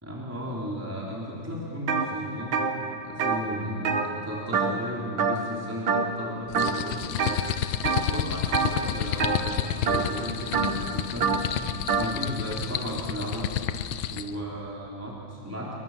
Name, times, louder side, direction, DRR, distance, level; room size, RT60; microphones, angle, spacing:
voice 1, 0.0-2.6 3.0-7.1 7.5-11.4 11.9-13.5 14.1-15.7, equal, 5° right, -5 dB, 3.5 m, -35 dB
sound 1, 1.9-2.1 2.4-4.9 5.2-5.6 5.9-6.2 6.5-7.4 7.8-8.2 8.5-12.1, right 5 dB, 85° right, 2.4 m, -26 dB
sound 2, 6.5-14.3, left 11 dB, 85° left, 1.6 m, -31 dB
29.0 x 23.0 x 7.4 m, 2.8 s
omnidirectional pair, 2.1 m